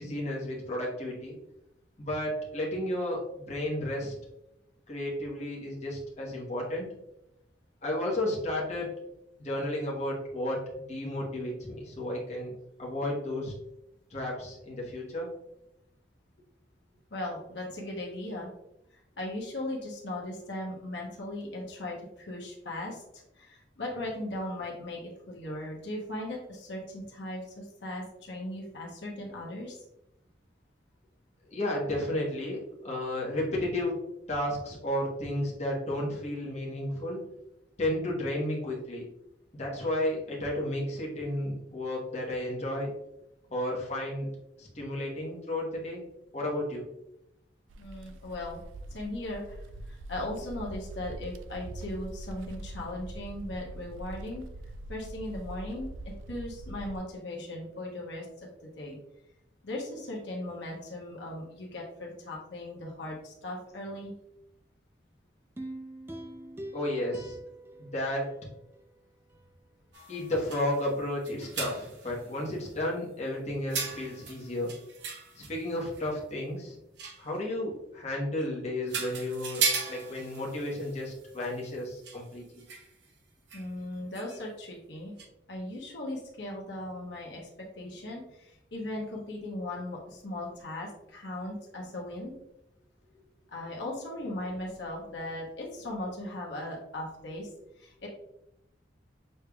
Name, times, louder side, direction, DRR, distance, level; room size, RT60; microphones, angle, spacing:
voice 1, 0.0-1.4 2.0-3.2 3.5-4.1 4.9-6.9 7.8-8.9 9.4-12.5 12.8-13.5 14.1-15.3 31.5-34.0 34.3-37.2 37.8-39.1 39.6-42.9 43.5-44.3 44.6-46.0 46.3-46.8 66.7-67.4 67.8-68.3 70.1-74.7 75.3-76.8 77.2-82.4, left 1 dB, 35° left, -3 dB, 1.1 m, -32 dB
voice 2, 17.1-18.5 19.2-29.8 47.8-48.6 48.9-54.4 54.9-58.5 58.8-59.0 59.6-64.1 83.5-85.1 85.5-92.3 93.5-97.5 97.8-98.1, left 1 dB, 70° left, -2 dB, 1.0 m, -38 dB
sound 1, 47.7-57.0, right 1 dB, 90° right, 0.4 m, -43 dB
sound 2, 65.6-68.9 69.3-69.4, right 1 dB, 10° right, 0.3 m, -44 dB
sound 3, 69.9-72.8 73.7-76.1 77.0-77.4 78.4-78.5 78.9-83.1 83.5-83.7 84.1-84.4 85.2-85.3, right 5 dB, 70° right, 0.8 m, -37 dB
6.4 x 3.3 x 2.3 m, 0.85 s
head